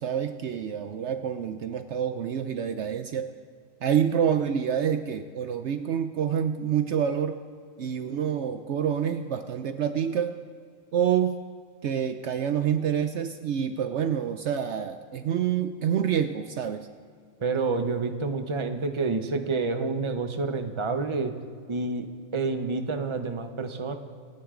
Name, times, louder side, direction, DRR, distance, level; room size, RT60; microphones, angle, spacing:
voice 1, 0.0-3.3 3.8-7.4 7.8-10.4 10.9-11.4 11.8-16.9, right 8 dB, 65° right, 9 dB, 0.8 m, -27 dB
voice 2, 17.4-21.3 21.7-23.9, right 4 dB, 25° right, 6 dB, 0.8 m, -28 dB
26.5 x 10.0 x 3.8 m, 2.1 s
omnidirectional pair, 1.4 m